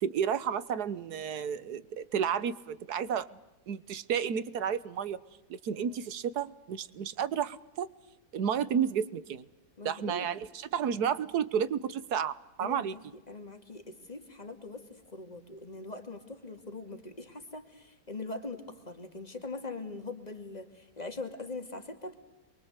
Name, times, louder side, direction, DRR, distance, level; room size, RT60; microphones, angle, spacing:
voice 1, 0.0-3.3 3.7-5.2 5.5-7.9 8.3-9.4 9.8-12.9, right 8 dB, 70° right, 16 dB, 1.6 m, -31 dB
voice 2, 9.8-10.3 12.6-13.0 13.3-22.1, left 3 dB, 25° left, 6 dB, 2.5 m, -42 dB
28.0 x 23.5 x 8.2 m, 0.96 s
omnidirectional pair, 1.8 m